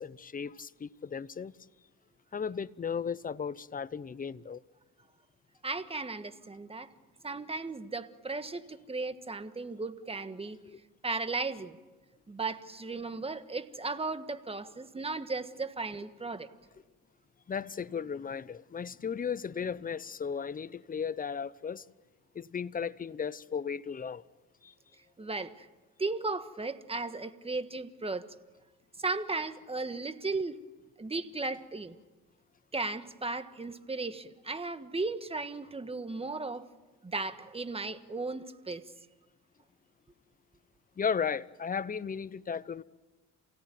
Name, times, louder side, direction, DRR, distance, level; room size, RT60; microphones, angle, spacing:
voice 1, 0.0-1.5 2.3-4.6 17.5-21.8 22.3-24.2 24.6-24.7 41.0-42.8, left 6 dB, 20° left, 0.7 m, -35 dB
voice 2, 5.6-6.9 7.2-10.6 11.0-11.8 12.3-16.5 25.2-25.7 26.0-28.3 29.0-30.6 31.0-32.0 32.7-36.7 37.0-38.9, right 3 dB, 15° right, 1.5 m, -36 dB
28.5 x 17.0 x 9.3 m
cardioid pair, 95°, 38 cm